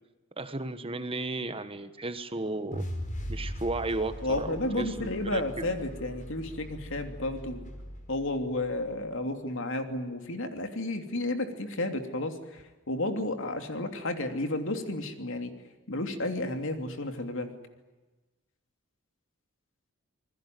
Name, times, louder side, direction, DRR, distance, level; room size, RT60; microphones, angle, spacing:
voice 1, 0.4-2.9 3.3-5.7, right 2 dB, 25° right, 11 dB, 1.2 m, -34 dB
sound 1, 2.7-8.9, equal, 35° left, 4.9 m, -40 dB
voice 2, 4.2-7.6 8.1-15.5 15.9-17.5, left 2 dB, 60° left, 6 dB, 3.0 m, -32 dB
27.5 x 20.5 x 9.4 m, 1.2 s
head